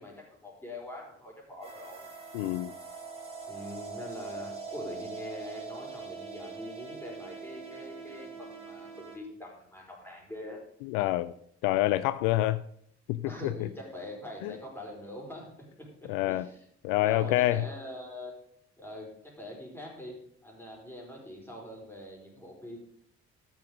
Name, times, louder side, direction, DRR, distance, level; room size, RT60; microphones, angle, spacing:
voice 1, 0.0-2.1 3.5-10.6 13.3-16.6 17.0-18.4 18.8-22.8, left 1 dB, 5° left, 5.0 m, -44 dB
sound 1, 1.6-9.2, right 5 dB, 20° right, 3.4 m, -42 dB
voice 2, 2.3-2.7 10.8-11.3 11.6-12.6 13.1-13.7 14.4-14.5 16.1-16.5 16.8-17.7, left 15 dB, 70° left, 0.5 m, -27 dB
13.0 x 6.2 x 5.3 m
hypercardioid pair, 45°, 33 cm